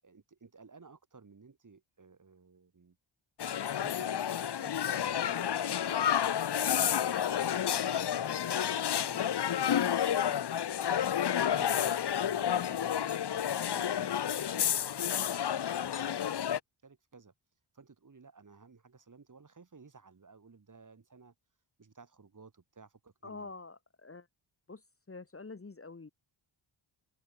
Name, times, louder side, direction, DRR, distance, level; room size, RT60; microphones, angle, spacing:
voice 1, 0.0-3.0 3.8-6.3 6.8-10.9 11.3-12.9 13.3-17.3 17.7-21.3 21.8-23.5, right 4 dB, 40° right, 5.3 m, -56 dB
sound 1, 3.4-16.6, left 9 dB, 55° left, 1.0 m, -30 dB
voice 2, 23.2-24.3 24.7-24.8 25.1-26.1, left 3 dB, 25° left, 2.3 m, -46 dB
wide cardioid pair, 105°, 50 cm